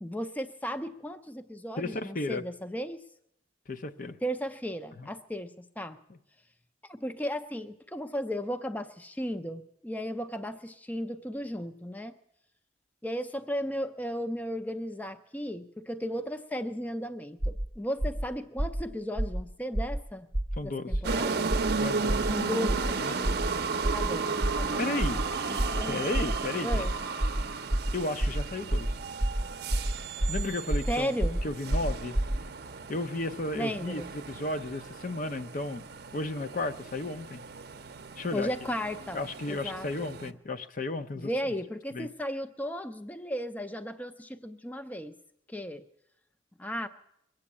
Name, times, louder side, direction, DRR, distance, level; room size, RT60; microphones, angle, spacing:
voice 1, 0.0-3.0 4.2-6.0 6.9-12.1 13.0-20.3 20.6-21.5 22.3-23.4 23.9-24.8 25.5-26.1 26.6-26.9 30.9-31.4 33.5-34.1 38.3-40.3 41.1-45.1 45.5-45.8 46.6-46.9, equal, 10° left, 10 dB, 0.5 m, -35 dB
voice 2, 1.8-2.4 3.7-4.2 5.0-5.1 20.6-21.0 21.8-22.3 23.0-23.1 24.8-25.2 25.9-26.9 27.9-28.9 30.3-31.2 31.4-32.2 32.9-35.8 36.1-37.4 38.2-38.5 39.1-41.3 41.9-42.1, left 2 dB, 45° left, 10 dB, 0.6 m, -34 dB
sound 1, 17.4-17.7 18.0-18.2 18.6-18.8 19.2-19.4 19.7-20.0 20.3-20.6 20.9-21.2 21.5-21.7 22.1-22.3 22.7-22.9 23.2-23.5 23.8-24.1 24.4-24.7 25.0-25.2 25.6-25.8 26.1-26.4 26.7-26.9 27.2-27.4 27.7-27.9 28.2-28.4 28.7-28.9 29.2-29.4 29.7-29.9 30.2-30.4 30.7-30.9 31.2-31.4 31.7-32.4, right 1 dB, 20° right, 0.8 m, -28 dB
sound 2, 21.0-40.3, right 4 dB, 60° right, 0.7 m, -34 dB
21.5 x 7.8 x 8.5 m, 0.78 s
head